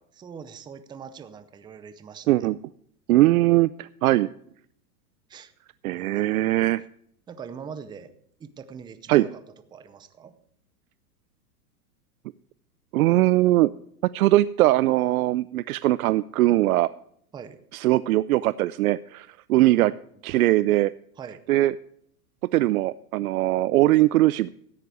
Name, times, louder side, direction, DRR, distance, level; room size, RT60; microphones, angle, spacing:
voice 1, 0.2-2.3 5.3-5.5 5.9-6.6 7.3-8.1 8.4-9.4 9.7-10.3 17.3-17.6 19.7-20.0 21.2-21.4, right 6 dB, 10° right, 12 dB, 0.6 m, -42 dB
voice 2, 3.1-4.3 5.8-6.8 9.1-9.3 12.9-13.7 14.1-16.9 17.7-19.9 20.2-20.9 21.5-21.7 22.5-24.5, right 16 dB, 70° right, 17 dB, 0.5 m, -20 dB
13.5 x 9.7 x 4.8 m, 0.68 s
hypercardioid pair, 135°, 46 cm